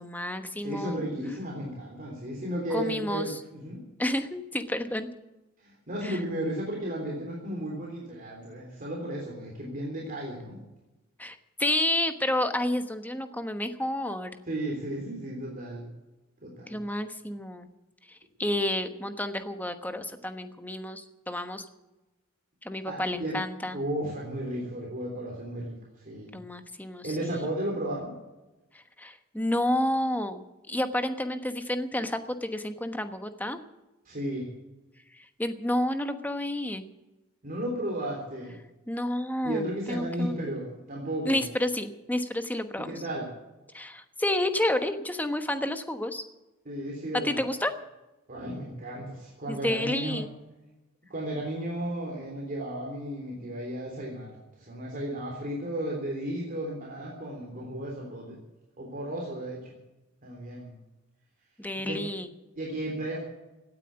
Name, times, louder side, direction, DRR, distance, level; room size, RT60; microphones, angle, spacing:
voice 1, 0.0-1.0 2.7-3.4 4.0-5.1 6.0-6.2 11.2-14.4 16.7-17.7 18.1-21.6 22.6-23.8 26.3-27.5 28.7-33.6 35.2-36.9 38.9-40.5 41.3-42.9 43.7-46.2 47.2-47.7 49.5-50.3 61.6-62.3, left 1 dB, 10° left, 8 dB, 1.2 m, -30 dB
voice 2, 0.6-3.8 5.6-10.6 14.5-15.9 16.4-16.8 22.9-23.4 23.7-26.4 27.0-28.1 34.1-34.5 37.4-38.6 39.4-41.4 42.8-43.3 46.7-47.3 48.3-50.2 51.1-58.4 58.8-59.8 60.2-60.7 61.9-62.0 62.6-63.2, right 1 dB, 40° right, -2 dB, 3.4 m, -34 dB
17.0 x 9.2 x 8.7 m, 1.1 s
head